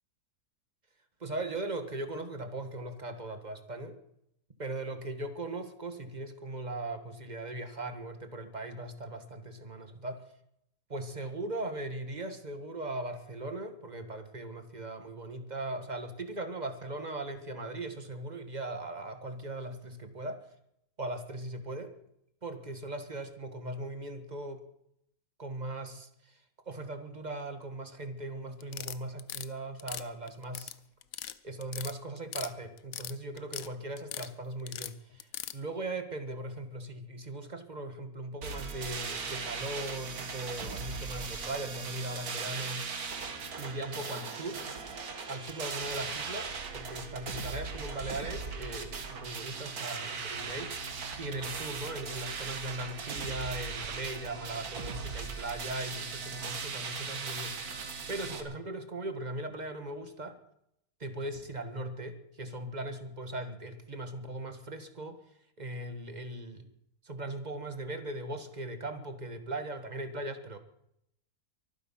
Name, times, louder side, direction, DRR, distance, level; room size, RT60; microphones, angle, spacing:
voice 1, 1.2-4.0 4.6-10.3 10.9-20.5 21.0-21.9 22.4-24.6 25.4-30.7 31.4-42.8 43.6-57.8 58.1-60.4 61.0-65.2 65.6-66.7 67.0-70.6, right 2 dB, 30° right, 8 dB, 1.7 m, -39 dB
sound 1, 28.6-29.5 29.8-30.7 31.0-31.3 31.6-32.5 32.8-33.7 34.0-34.3 34.7-35.6, left 11 dB, 70° left, 1.1 m, -39 dB
sound 2, 38.4-58.4, right 5 dB, 80° right, 2.0 m, -38 dB
24.0 x 9.5 x 5.7 m, 0.76 s
omnidirectional pair, 1.6 m